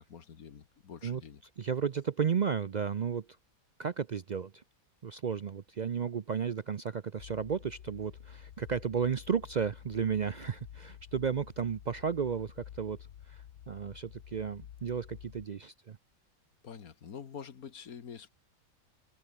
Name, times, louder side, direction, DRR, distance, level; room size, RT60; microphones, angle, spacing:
voice 1, 0.0-1.4 16.6-18.3, left 7 dB, 70° left, 1.9 m, -46 dB
voice 2, 1.6-3.3 3.8-4.6 5.0-13.0 13.3-16.0, right 7 dB, 70° right, 0.4 m, -33 dB
sound 1, 7.2-15.5, left 10 dB, 90° left, 1.5 m, -51 dB
omnidirectional pair, 1.6 m